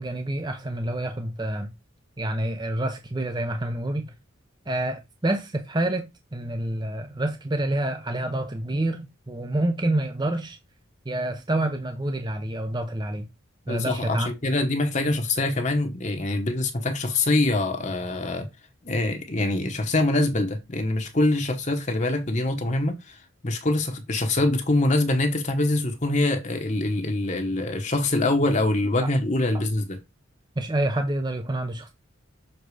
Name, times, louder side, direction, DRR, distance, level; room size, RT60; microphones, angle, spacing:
voice 1, 0.0-1.7 2.2-4.1 4.7-10.6 11.1-13.3 13.7-14.3 29.0-29.1 30.6-31.9, right 1 dB, 20° right, 0.6 m, -28 dB
voice 2, 13.7-18.5 18.8-30.0, left 2 dB, 35° left, 1.1 m, -24 dB
6.8 x 3.9 x 4.8 m
head